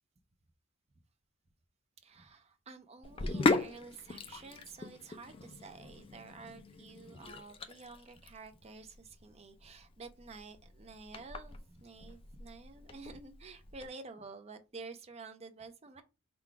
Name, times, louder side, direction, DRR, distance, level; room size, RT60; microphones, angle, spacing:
voice 1, 2.0-16.0, right 3 dB, 30° right, 0.6 m, -50 dB
Sink (filling or washing), 3.0-13.9, left 3 dB, 25° left, 0.4 m, -38 dB
3.8 x 2.3 x 4.6 m
head